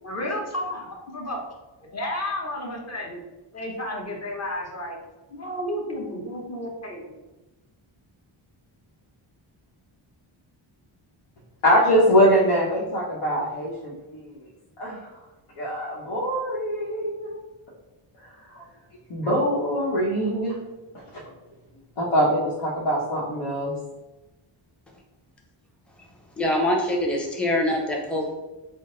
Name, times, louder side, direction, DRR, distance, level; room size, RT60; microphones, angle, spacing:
voice 1, 0.0-1.4 1.8-3.2 3.5-5.0 5.3-7.1, left 1 dB, 30° left, -1 dB, 0.9 m, -32 dB
voice 2, 11.6-14.5 14.8-15.1 15.6-17.4 18.2-18.6 19.1-20.6 22.0-23.7, equal, 80° left, -7 dB, 1.0 m, -23 dB
voice 3, 26.4-28.3, left 1 dB, ahead, -1 dB, 0.6 m, -24 dB
3.7 x 2.0 x 3.7 m, 1.1 s
wide cardioid pair, 100°, 49 cm